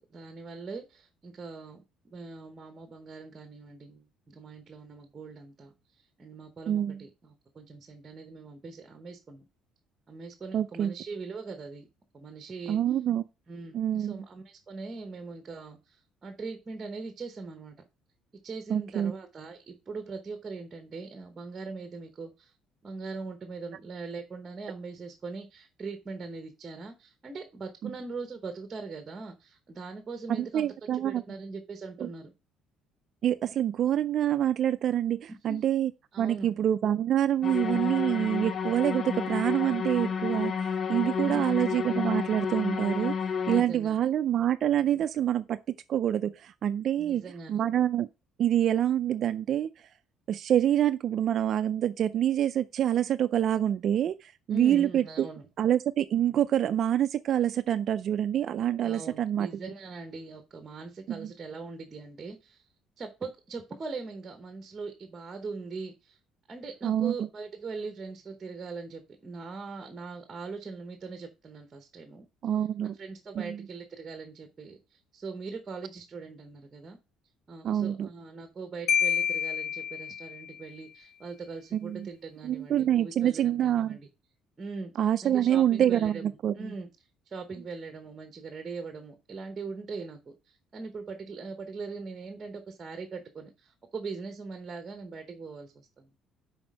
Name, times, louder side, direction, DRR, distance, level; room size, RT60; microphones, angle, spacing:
voice 1, 0.0-9.5 10.1-11.9 12.1-12.8 13.5-17.7 18.4-22.5 22.8-32.3 35.5-35.6 36.1-36.5 41.2-41.7 43.4-44.1 47.0-47.6 54.5-55.5 58.8-62.6 63.0-66.2 66.5-72.3 72.8-77.0 77.5-84.1 84.6-84.9 85.2-86.9 87.3-96.1, right 4 dB, 20° right, 0.9 m, -41 dB
voice 2, 6.7-7.0 10.5-10.9 12.7-13.2 13.7-14.2 18.7-19.1 27.8-27.9 30.3-31.2 32.0-32.1 33.2-35.9 36.2-43.1 43.5-45.6 45.9-47.2 47.5-48.1 48.4-49.7 50.3-55.3 55.6-59.5 61.1-61.3 66.8-67.1 72.4-72.9 73.4-73.6 77.6-78.1 81.7-82.1 82.4-84.0 85.0-86.7, right 10 dB, 45° right, 0.3 m, -26 dB
sound 1, 37.4-43.6, left 6 dB, 35° left, 0.4 m, -31 dB
Marimba xylophone, 78.9-80.6, left 8 dB, 70° left, 0.6 m, -28 dB
6.2 x 4.2 x 6.1 m
cardioid pair, 155°, 0 cm